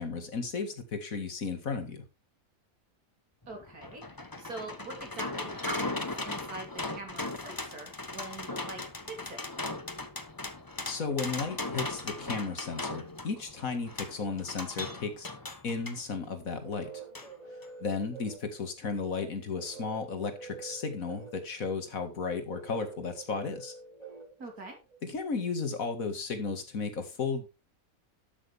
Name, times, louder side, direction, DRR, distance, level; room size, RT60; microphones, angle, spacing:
voice 1, 0.0-2.0 10.9-15.3 15.6-17.0 17.8-23.7 25.0-27.5, left 4 dB, 65° left, 8 dB, 2.2 m, -34 dB
sound 1, 3.5-16.0 17.2-17.3 17.6-17.7, left 2 dB, 15° left, 0.9 m, -38 dB
voice 2, 3.5-9.4 24.4-24.8, right 2 dB, 90° right, 2 dB, 3.9 m, -43 dB
sound 2, 16.3-25.0, right 5 dB, 25° right, 3.2 m, -47 dB
12.0 x 8.4 x 3.5 m, 0.27 s
omnidirectional pair, 1.5 m